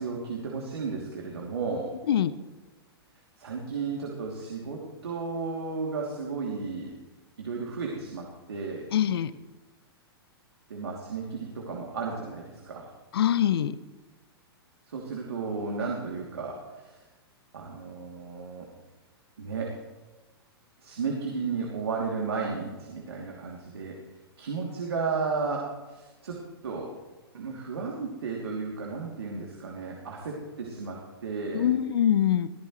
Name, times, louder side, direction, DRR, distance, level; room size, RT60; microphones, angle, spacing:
voice 1, 0.0-2.0 3.4-6.9 7.4-8.9 10.7-12.9 14.9-17.0 17.5-18.7 19.4-19.8 20.8-24.0 24.4-26.9 27.3-31.7, right 4 dB, 75° right, -1 dB, 2.9 m, -34 dB
voice 2, 8.9-9.3 13.1-13.8 31.5-32.5, left 10 dB, 65° left, 16 dB, 0.8 m, -23 dB
22.5 x 14.5 x 3.3 m, 1.2 s
hypercardioid pair, 110°, 13 cm